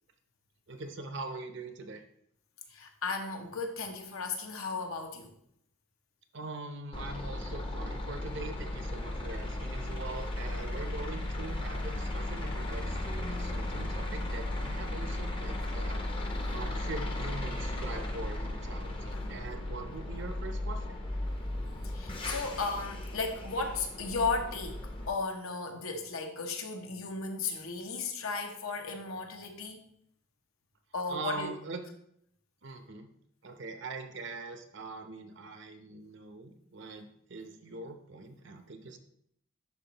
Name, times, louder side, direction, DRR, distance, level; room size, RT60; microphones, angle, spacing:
voice 1, 0.7-2.0 6.3-16.0 16.5-21.0 31.1-31.8 32.6-33.1 33.4-39.0, right 3 dB, 55° right, 6 dB, 0.7 m, -42 dB
voice 2, 2.7-5.3 15.6-15.7 16.2-16.6 19.1-19.4 21.8-29.8 30.9-31.5, left 4 dB, 75° left, 4 dB, 1.0 m, -35 dB
sound 1, 6.9-25.1, left 1 dB, 25° left, 0.7 m, -36 dB
11.0 x 4.1 x 2.9 m, 0.71 s
head